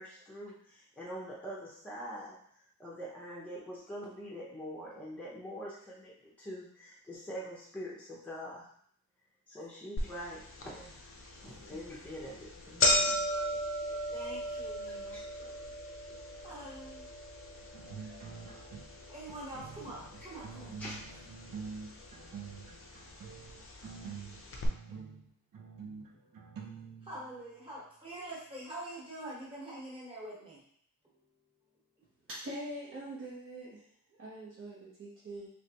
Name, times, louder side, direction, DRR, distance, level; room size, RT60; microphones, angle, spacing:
voice 1, 0.0-2.4 2.8-8.7 9.5-11.0 11.4-13.2 15.1-15.2 18.0-18.1 20.2-20.3 20.8-21.2, equal, 5° left, -5 dB, 0.7 m, -44 dB
sound 1, 10.0-10.1 10.6-10.7 11.5-11.7 12.1-12.2 12.4-20.6 20.9-21.6 22.4-22.5 23.5-23.6 23.9-24.0 24.5-24.7, left 1 dB, 40° left, 0.6 m, -34 dB
voice 2, 14.1-15.2 16.4-17.1 19.1-20.9 27.0-30.6, right 1 dB, 15° right, -6 dB, 1.2 m, -45 dB
sound 2, 17.7-19.0 19.3-27.4, right 6 dB, 80° right, 0.7 m, -46 dB
voice 3, 32.3-35.5, right 1 dB, 40° right, -8 dB, 0.8 m, -43 dB
3.2 x 3.2 x 2.9 m, 0.63 s
wide cardioid pair, 170°, 34 cm